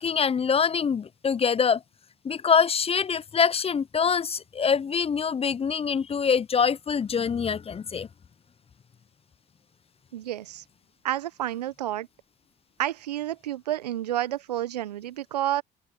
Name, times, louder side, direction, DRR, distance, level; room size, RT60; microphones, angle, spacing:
voice 1, 0.0-1.8 2.2-8.1, left 6 dB, 30° left, 0.8 m, -24 dB
voice 2, 10.1-10.6 11.0-12.1 12.8-15.6, right 13 dB, 80° right, 1.2 m, -30 dB
open air
figure-of-eight pair, 55°, 20 cm